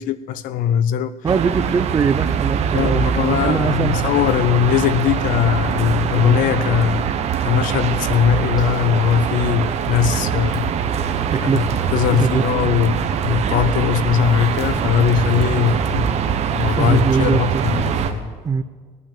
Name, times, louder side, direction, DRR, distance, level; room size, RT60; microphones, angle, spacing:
voice 1, 0.0-1.1 2.7-7.0 7.4-10.7 11.4-11.6 11.9-16.2 16.5-18.3, left 9 dB, 75° left, 0.7 m, -20 dB
voice 2, 1.2-4.0 11.3-11.8 12.1-12.4 16.8-17.6 18.4-18.6, right 5 dB, 25° right, 0.5 m, -21 dB
sound 1, 1.3-18.1, right 8 dB, 50° right, 1.0 m, -22 dB
Dog, 7.5-18.0, left 1 dB, 30° left, 5.0 m, -41 dB
18.0 x 6.0 x 8.8 m
cardioid pair, 130°, 14 cm